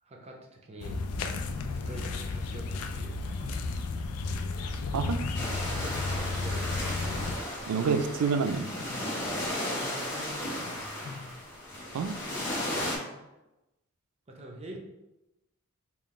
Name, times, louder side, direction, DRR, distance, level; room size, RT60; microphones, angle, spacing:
voice 1, 0.0-1.0 1.7-3.6 5.6-6.8 9.1-10.7 12.6-13.1 14.3-14.8, right 1 dB, 30° right, 0 dB, 0.6 m, -45 dB
sound 1, 0.8-7.4, left 3 dB, 75° left, 0.4 m, -33 dB
sound 2, 1.6-2.4 3.4-4.1 4.5-4.6 5.2-5.9 7.0-7.8 8.1-8.4 8.8-9.4 10.6-11.3, left 3 dB, 25° left, 1.0 m, -46 dB
voice 2, 4.9-5.3 7.7-8.7 11.9-12.2, right 5 dB, 80° right, 9 dB, 0.4 m, -28 dB
sound 3, 5.3-13.0, left 1 dB, 50° left, 1.1 m, -35 dB
3.7 x 2.4 x 3.6 m, 0.98 s
head